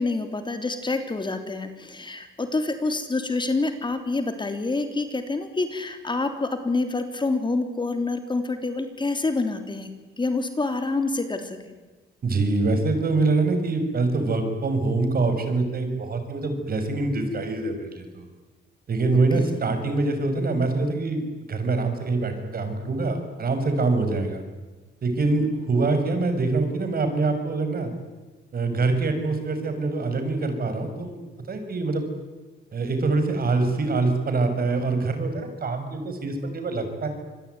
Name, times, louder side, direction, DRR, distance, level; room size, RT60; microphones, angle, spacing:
voice 1, 0.0-9.9 10.2-11.7 19.3-19.6, left 3 dB, 25° left, 7 dB, 3.3 m, -27 dB
voice 2, 12.2-18.2 18.9-21.2 21.5-24.4 25.0-27.9 28.5-32.1 32.7-37.1, right 3 dB, 50° right, 7 dB, 6.4 m, -24 dB
26.5 x 21.5 x 9.6 m, 1.2 s
cardioid pair, 90°, 20 cm